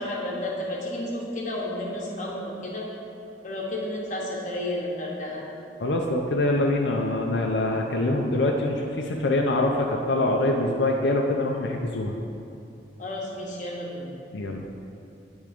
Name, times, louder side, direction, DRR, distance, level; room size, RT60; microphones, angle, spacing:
voice 1, 0.0-2.9 3.4-5.4 13.0-14.1, left 1 dB, 45° left, -3 dB, 1.1 m, -32 dB
voice 2, 5.8-12.2 14.3-14.7, left 2 dB, 85° left, 0 dB, 0.5 m, -24 dB
9.1 x 3.6 x 5.0 m, 2.7 s
head